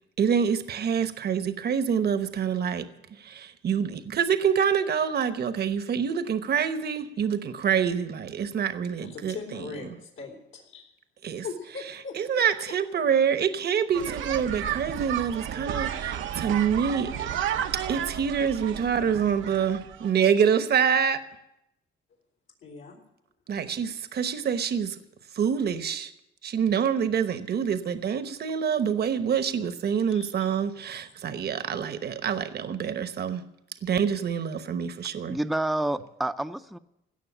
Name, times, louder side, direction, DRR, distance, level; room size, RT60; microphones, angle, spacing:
voice 1, 0.2-2.8 3.2-9.3 11.2-11.4 12.2-17.3 17.9-21.2 23.5-25.0 25.3-26.1 26.4-33.4 33.8-35.4, right 7 dB, 55° right, 11 dB, 1.0 m, -26 dB
voice 2, 9.0-10.9 11.4-12.7 22.6-23.0 30.1-30.5, left 4 dB, 80° left, -1 dB, 3.7 m, -40 dB
sound 1, 13.9-20.1, right 10 dB, 80° right, 0.8 m, -32 dB
voice 3, 35.3-36.8, right 1 dB, ahead, 9 dB, 0.6 m, -28 dB
17.0 x 6.5 x 9.9 m, 0.84 s
cardioid pair, 90°, 20 cm